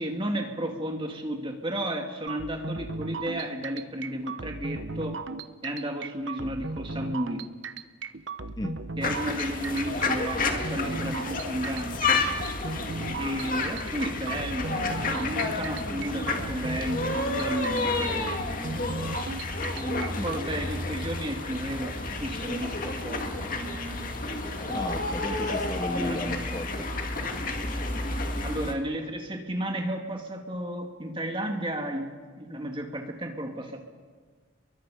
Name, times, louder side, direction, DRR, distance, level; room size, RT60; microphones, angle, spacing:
voice 1, 0.0-5.2 5.6-7.4 9.0-12.0 13.2-18.6 19.7-24.2 24.7-24.9 26.0-26.3 28.4-33.8, right 1 dB, 25° right, 2 dB, 2.5 m, -33 dB
sound 1, 2.3-20.4, right 3 dB, 70° right, 0.9 m, -37 dB
sound 2, 9.0-28.7, left 3 dB, 45° left, 2.1 m, -30 dB
voice 2, 24.7-26.9, left 1 dB, 20° left, 8 dB, 0.7 m, -34 dB
29.5 x 23.0 x 5.2 m, 1.5 s
head